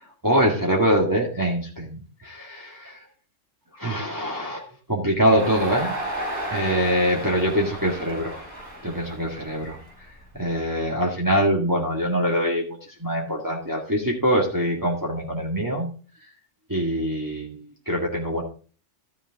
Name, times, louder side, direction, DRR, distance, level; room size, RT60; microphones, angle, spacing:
voice 1, 0.2-2.8 3.7-5.9 6.5-8.4 8.8-9.8 10.3-15.9 16.7-18.4, equal, 15° right, -2 dB, 2.0 m, -24 dB
Crowd, 5.3-10.5, right 1 dB, 70° right, 5.5 m, -33 dB
13.5 x 7.0 x 3.6 m, 0.38 s
omnidirectional pair, 1.2 m